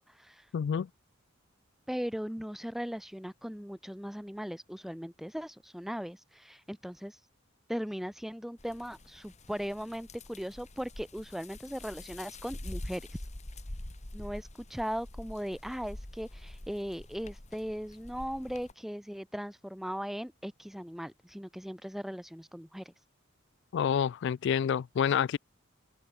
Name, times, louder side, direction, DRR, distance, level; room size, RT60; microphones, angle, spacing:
voice 1, 0.5-0.9 23.7-25.4, left 8 dB, 60° left, 0.3 m, -28 dB
voice 2, 1.9-7.2 7.7-13.0 14.1-22.9, equal, ahead, 1.0 m, -38 dB
sound 1, 8.6-18.7, left 1 dB, 35° left, 2.0 m, -45 dB
head